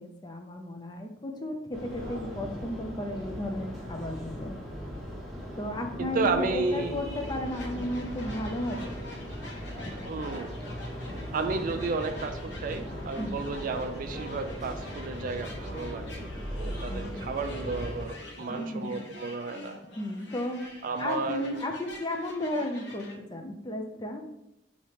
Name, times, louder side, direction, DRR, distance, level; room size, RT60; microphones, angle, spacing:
voice 1, 0.0-4.6 5.6-9.0 9.7-9.8 13.2-13.4 16.9-17.1 18.5-19.0 20.0-20.6 21.0-24.2, left 1 dB, 25° left, 4 dB, 0.4 m, -34 dB
sound 1, 1.7-18.0, equal, ahead, 1.1 m, -38 dB
voice 2, 6.0-7.0 10.1-10.5 11.3-16.1 16.6-19.8 20.8-21.5, right 4 dB, 50° right, 7 dB, 0.3 m, -32 dB
sound 2, 7.2-23.1, left 1 dB, 70° left, 0.8 m, -46 dB
4.9 x 2.8 x 2.9 m, 0.84 s
head